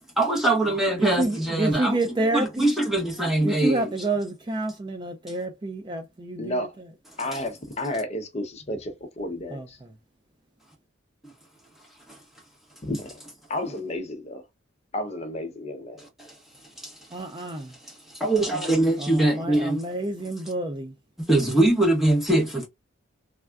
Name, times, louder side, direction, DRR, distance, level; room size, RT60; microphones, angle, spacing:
voice 1, 0.2-2.0 2.3-3.9 12.1-12.2 16.2-16.3 16.8-16.9 18.1-19.8 21.3-22.7, right 1 dB, ahead, 0.9 m, -22 dB
voice 2, 1.0-2.7 3.4-6.9 9.5-9.9 17.1-17.7 19.0-20.9, right 2 dB, 25° right, 0.4 m, -29 dB
voice 3, 6.4-6.7 7.2-9.8 12.8-13.2 13.5-14.5 14.9-16.0, left 1 dB, 35° left, 0.6 m, -32 dB
3.4 x 2.2 x 2.3 m
head